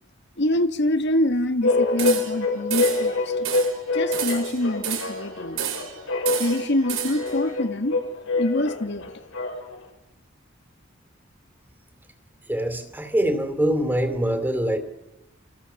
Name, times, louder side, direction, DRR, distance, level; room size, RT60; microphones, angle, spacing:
voice 1, 0.4-3.5 3.9-5.7 6.4-8.0 8.3-9.1, left 1 dB, 60° left, 1.6 m, -25 dB
sound 1, 1.6-9.8, left 2 dB, 80° left, 7.0 m, -26 dB
sound 2, 2.0-2.4 2.7-3.1 3.4-3.8 4.1-5.2 5.6-6.0 6.2-7.3, right 8 dB, 90° right, 4.1 m, -30 dB
voice 2, 12.5-14.8, equal, 10° right, 3.2 m, -24 dB
28.5 x 24.0 x 7.1 m
head